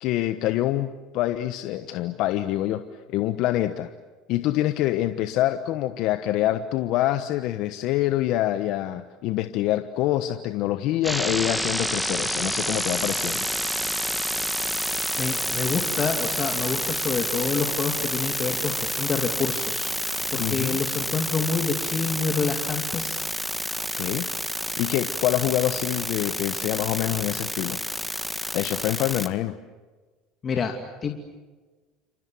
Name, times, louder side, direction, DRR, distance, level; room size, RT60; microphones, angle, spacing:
voice 1, 0.0-2.8 3.1-3.9 4.3-13.5 20.3-20.8 24.0-24.3 24.8-27.8 28.5-29.5, left 14 dB, 65° left, 10 dB, 1.1 m, -26 dB
sound 1, 11.0-29.3, equal, ahead, 1.9 m, -29 dB
voice 2, 15.2-23.2 30.4-31.1, left 5 dB, 35° left, 3 dB, 2.6 m, -28 dB
28.5 x 26.0 x 7.7 m, 1.3 s
hypercardioid pair, 80°, 0 cm